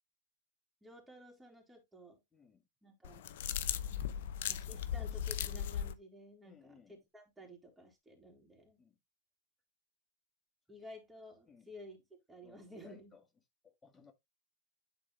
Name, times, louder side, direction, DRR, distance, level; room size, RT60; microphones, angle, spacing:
voice 1, 0.8-2.2 2.8-3.2 4.5-6.8 7.1-8.8 10.7-12.0 12.3-13.1, left 1 dB, 10° right, 3.3 m, -53 dB
voice 2, 2.3-2.6 6.4-7.0 8.8-9.0 11.5-11.7 12.4-13.2 13.6-14.1, left 6 dB, 15° left, 1.8 m, -61 dB
sound 1, 3.0-5.9, left 9 dB, 65° left, 0.8 m, -37 dB
9.9 x 4.3 x 3.2 m
hypercardioid pair, 105°, 0 cm